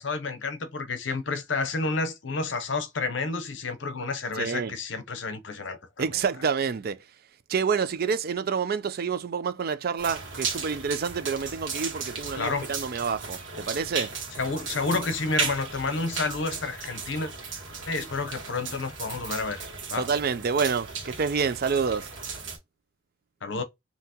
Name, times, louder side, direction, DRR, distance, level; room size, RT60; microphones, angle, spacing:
voice 1, 0.0-5.8 12.3-12.7 14.4-17.3 17.9-19.6 19.9-20.1 23.4-23.6, left 3 dB, 65° left, 0.7 m, -30 dB
voice 2, 4.3-4.7 6.0-7.0 7.5-14.2 20.0-22.1, right 6 dB, 50° right, 0.4 m, -28 dB
sound 1, 10.0-22.6, right 5 dB, 70° right, 1.5 m, -36 dB
5.6 x 2.9 x 2.8 m
head